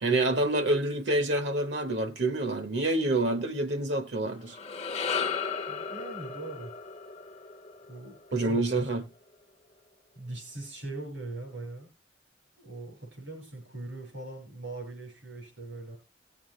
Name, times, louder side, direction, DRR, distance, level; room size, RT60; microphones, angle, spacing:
voice 1, 0.0-4.6 8.3-9.1, right 2 dB, 65° right, 1.1 m, -27 dB
sound 1, 4.4-8.8, left 5 dB, 35° left, 0.7 m, -35 dB
voice 2, 5.7-6.7 7.9-8.9 10.1-11.9 12.6-16.0, right 2 dB, 85° right, 5.7 m, -41 dB
18.0 x 7.3 x 3.1 m
head